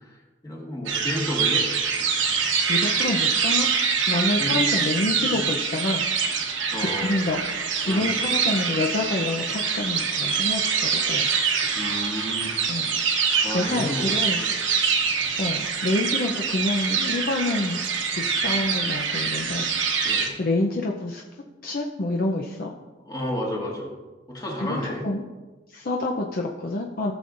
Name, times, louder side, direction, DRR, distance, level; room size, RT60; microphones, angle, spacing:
voice 1, 0.0-1.6 4.4-4.6 5.0-5.3 6.7-7.1 7.8-8.1 11.7-12.5 13.4-14.5 20.0-20.3 23.0-23.9 24.3-25.0, left 1 dB, 20° left, -2 dB, 1.8 m, -31 dB
sound 1, 0.9-20.3, right 6 dB, 85° right, 1.1 m, -25 dB
voice 2, 2.7-3.7 4.1-6.0 6.8-7.4 7.9-11.3 12.7-12.9 13.2-14.4 15.4-17.8 18.1-19.7 20.4-21.2 21.6-22.7 24.6-24.8 25.0-25.2 25.7-27.1, left 2 dB, 50° left, 0 dB, 0.6 m, -27 dB
14.5 x 7.0 x 2.5 m, 1.2 s
head